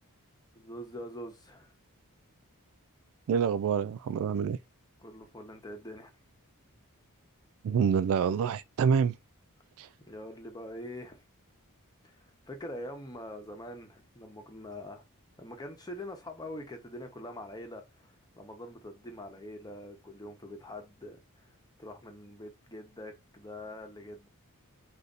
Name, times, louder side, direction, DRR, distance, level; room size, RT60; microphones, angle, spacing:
voice 1, 0.5-1.7 5.0-6.1 10.1-11.2 12.0-15.0 15.4-21.5 21.8-24.3, left 1 dB, 20° left, 1.0 m, -44 dB
voice 2, 3.3-4.6 7.6-9.2 9.8-9.9, right 7 dB, 65° right, 0.3 m, -27 dB
4.9 x 2.6 x 4.0 m
head